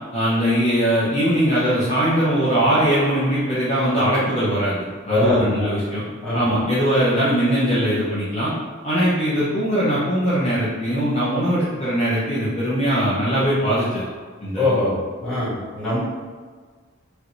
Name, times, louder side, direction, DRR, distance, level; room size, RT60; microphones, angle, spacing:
voice 1, 0.1-4.8 5.1-6.0 6.3-8.5 8.8-14.1 14.4-14.6, equal, 35° left, -9 dB, 0.6 m, -20 dB
voice 2, 5.1-5.7 6.2-6.5 14.6-14.9 15.2-16.0, left 2 dB, 5° left, -12 dB, 1.4 m, -22 dB
3.2 x 2.5 x 3.0 m, 1.5 s
head